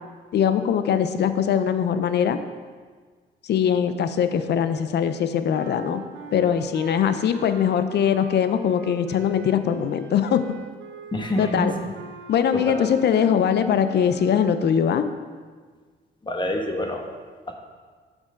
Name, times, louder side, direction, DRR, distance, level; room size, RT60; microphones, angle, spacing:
voice 1, 0.3-2.4 3.4-6.0 6.3-10.4 11.4-11.7 12.3-15.0, left 8 dB, 60° left, 10 dB, 0.6 m, -21 dB
sound 1, 5.5-14.7, right 6 dB, 70° right, 0.7 m, -42 dB
voice 2, 11.1-11.8 12.5-12.9 16.2-17.0 17.5-17.6, left 1 dB, 25° left, 3 dB, 1.1 m, -27 dB
6.3 x 6.2 x 5.1 m, 1.5 s
cardioid pair, 90°, 20 cm